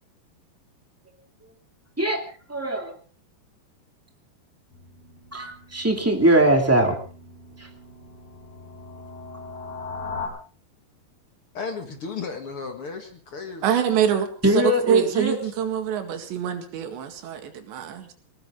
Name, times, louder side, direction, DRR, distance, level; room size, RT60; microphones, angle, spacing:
voice 1, 2.5-2.9 5.3-7.0 7.6-7.7 14.4-15.3, right 1 dB, 10° right, 3 dB, 0.9 m, -21 dB
sound 1, 4.7-10.3, left 4 dB, 90° left, 7.9 m, -39 dB
voice 2, 11.5-13.7 15.4-15.5, left 5 dB, 50° left, 5 dB, 1.7 m, -34 dB
voice 3, 13.6-14.3 14.9-18.1, right 8 dB, 85° right, 6 dB, 4.3 m, -25 dB
19.5 x 19.5 x 3.8 m, 0.41 s
omnidirectional pair, 5.0 m